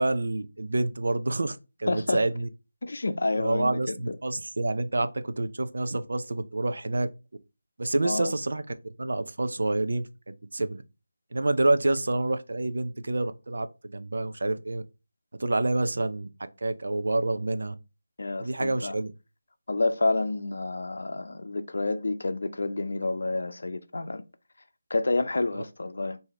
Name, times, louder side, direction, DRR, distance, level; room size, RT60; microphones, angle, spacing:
voice 1, 0.0-2.5 3.3-7.1 7.8-8.6 9.0-10.8 11.3-14.8 15.4-16.3 16.6-17.7 18.4-19.1 25.5-25.6, right 2 dB, 70° right, 0.5 m, -28 dB
voice 2, 1.9-2.2 2.8-4.2 8.0-8.3 18.2-19.0 19.7-24.2 24.9-26.2, left 2 dB, 70° left, 0.5 m, -29 dB
4.7 x 2.7 x 3.5 m
figure-of-eight pair, 165°, 0 cm